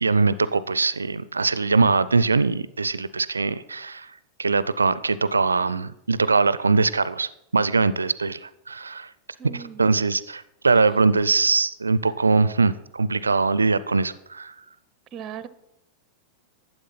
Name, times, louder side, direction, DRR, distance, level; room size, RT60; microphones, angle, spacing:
voice 1, 0.0-4.1 4.4-9.1 9.5-14.5, right 4 dB, 75° right, 17 dB, 0.4 m, -22 dB
voice 2, 9.4-9.9 15.1-15.5, right 8 dB, 30° right, 16 dB, 0.6 m, -37 dB
12.0 x 8.0 x 5.7 m, 0.81 s
figure-of-eight pair, 90°, 0 cm